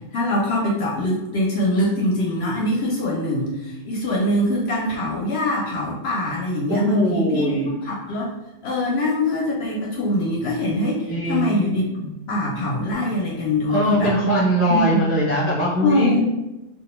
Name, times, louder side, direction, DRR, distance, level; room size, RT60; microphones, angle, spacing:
voice 1, 0.0-7.6 7.8-8.3 8.6-14.2 14.7-14.9 15.8-16.2, left 1 dB, 65° left, -3 dB, 0.7 m, -23 dB
voice 2, 6.7-7.7 11.1-11.5 13.7-16.1, right 1 dB, 15° right, -8 dB, 0.4 m, -21 dB
2.2 x 2.1 x 3.0 m, 0.99 s
omnidirectional pair, 1.3 m